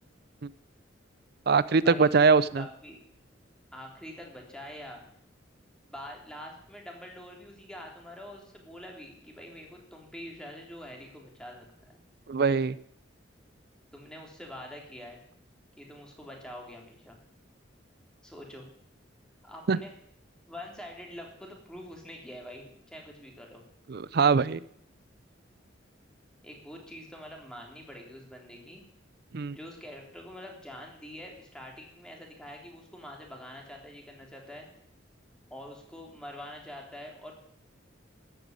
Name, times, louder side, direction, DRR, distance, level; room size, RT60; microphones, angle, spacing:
voice 1, 1.5-2.6 12.3-12.8 19.7-19.8 23.9-24.6 29.3-29.6, right 5 dB, 55° right, 18 dB, 0.5 m, -22 dB
voice 2, 2.5-3.0 3.7-5.0 5.9-12.0 13.9-15.2 15.8-17.2 18.2-18.6 19.4-19.9 20.5-23.6 26.4-28.8 29.5-34.7 35.5-37.4, left 1 dB, 5° left, 0 dB, 3.4 m, -45 dB
13.5 x 9.2 x 9.4 m, 0.68 s
head